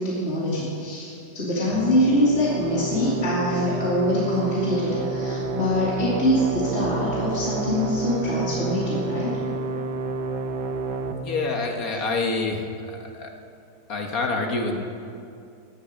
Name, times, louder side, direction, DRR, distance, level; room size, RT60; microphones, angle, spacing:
voice 1, 0.0-9.3, left 1 dB, 40° left, -7 dB, 2.8 m, -24 dB
sound 1, 1.7-11.1, right 3 dB, 75° right, 1.6 m, -29 dB
voice 2, 11.2-12.6 12.9-13.3 13.9-14.8, left 3 dB, 60° left, 2 dB, 2.0 m, -27 dB
17.5 x 10.0 x 6.5 m, 2.5 s
omnidirectional pair, 1.8 m